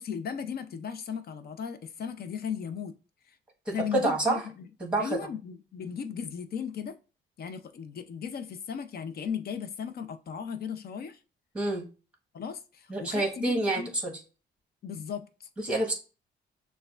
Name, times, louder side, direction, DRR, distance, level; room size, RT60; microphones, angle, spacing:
voice 1, 0.0-2.9 3.3-3.4 3.7-4.7 5.0-7.0 7.4-11.2 12.3-13.9 14.8-15.5, left 7 dB, 50° left, 0.6 m, -36 dB
voice 2, 3.7-4.4 4.8-5.2 11.5-11.8 12.9-14.1 15.6-15.9, right 2 dB, 5° right, 1.3 m, -28 dB
6.4 x 2.3 x 2.4 m
cardioid pair, 90°, 20 cm